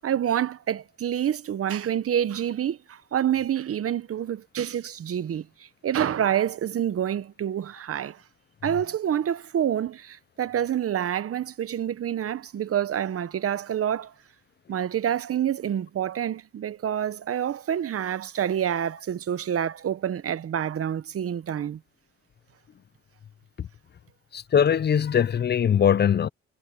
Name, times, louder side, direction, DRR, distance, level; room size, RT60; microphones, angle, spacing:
voice 1, 0.0-5.5 5.8-8.2 8.6-14.1 14.7-21.8, right 10 dB, 50° right, 0.9 m, -27 dB
voice 2, 24.3-26.3, left 8 dB, 35° left, 0.5 m, -21 dB
cardioid pair, 90°, 30 cm